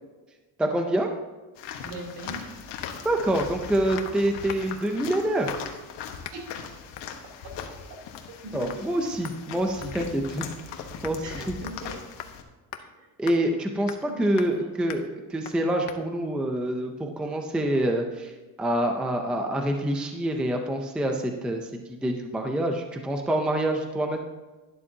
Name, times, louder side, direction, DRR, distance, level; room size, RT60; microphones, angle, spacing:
voice 1, 0.6-1.1 3.0-5.5 8.5-10.5 11.0-11.5 13.2-18.3 18.6-21.7 22.0-24.2, right 1 dB, ahead, 4 dB, 0.4 m, -26 dB
sound 1, 1.6-12.4, left 7 dB, 85° left, 1.4 m, -40 dB
voice 2, 1.8-2.5 6.3-6.5 7.4-7.5 8.4-8.9 11.2-12.0 12.8-13.1 13.7-14.7, right 1 dB, 70° right, -1 dB, 3.1 m, -41 dB
sound 2, 2.3-2.5 2.8-3.1 3.4-3.6 4.0-4.2 4.5-4.8 5.5-5.8 6.2-6.4 6.9-7.1 7.6-7.8 8.1-8.4 8.7-8.8 9.2-10.6 11.0-11.2 11.7-11.9 12.2-12.3 12.7-12.8 13.3-13.4 13.9-14.1 14.4-14.6 14.9-15.1 15.4-15.6 15.9-16.0, left 11 dB, 60° left, 0.9 m, -41 dB
12.0 x 11.5 x 2.8 m, 1.2 s
cardioid pair, 180°, 42 cm